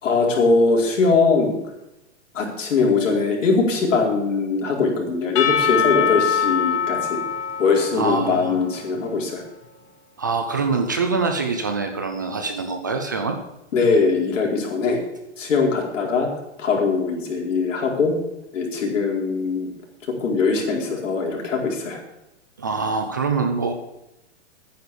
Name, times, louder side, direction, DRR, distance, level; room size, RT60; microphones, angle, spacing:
voice 1, 0.0-1.6 2.3-7.2 7.6-9.4 13.7-15.0 15.4-16.3 16.6-18.2 18.5-19.7 20.2-22.0, left 4 dB, 90° left, 0 dB, 4.5 m, -21 dB
Percussion / Church bell, 5.4-9.3, left 7 dB, 30° left, 1.4 m, -24 dB
voice 2, 7.9-8.6 10.2-13.4 22.6-23.7, right 4 dB, 15° right, 6 dB, 0.4 m, -24 dB
11.0 x 9.4 x 6.8 m, 0.91 s
hypercardioid pair, 170°, 37 cm